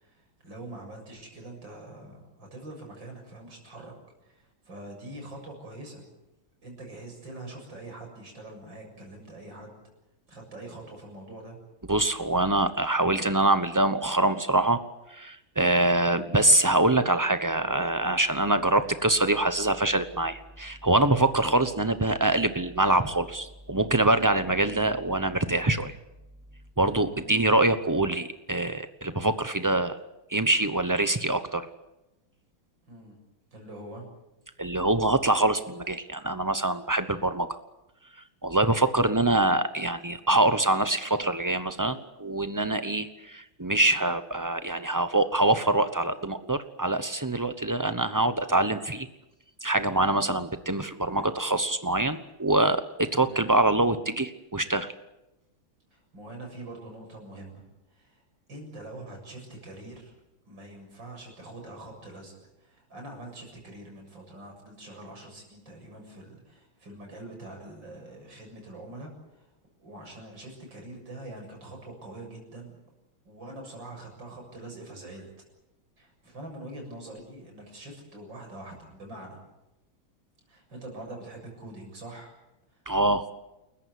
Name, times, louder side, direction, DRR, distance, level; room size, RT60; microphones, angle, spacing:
voice 1, 0.0-3.9 4.2-6.1 6.6-9.7 10.3-11.6 27.1-27.4 32.8-33.2 33.5-34.0 51.0-51.3 53.2-53.5 55.9-57.6 57.9-58.2 58.5-60.1 60.5-62.3 62.6-69.5 69.8-72.8 73.2-75.3 76.0-79.4 80.5-82.3 82.7-82.8, right 1 dB, 60° right, 1 dB, 8.0 m, -44 dB
voice 2, 11.9-14.8 15.1-25.9 26.8-30.0 30.3-31.7 34.6-37.5 38.4-49.1 49.6-54.9 82.9-83.3, right 2 dB, 30° right, 10 dB, 0.3 m, -24 dB
29.0 x 14.5 x 9.5 m, 0.95 s
omnidirectional pair, 2.3 m